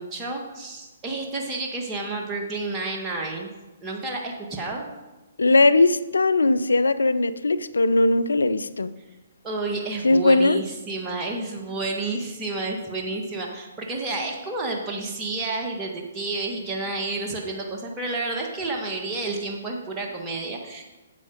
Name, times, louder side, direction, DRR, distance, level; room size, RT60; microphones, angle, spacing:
voice 1, 0.0-3.5 3.8-4.9 9.4-20.8, right 3 dB, 20° right, 0 dB, 1.5 m, -30 dB
voice 2, 5.4-8.9 10.0-10.6, left 2 dB, 75° left, 14 dB, 0.5 m, -19 dB
8.3 x 8.1 x 5.1 m, 1.1 s
figure-of-eight pair, 125°, 0 cm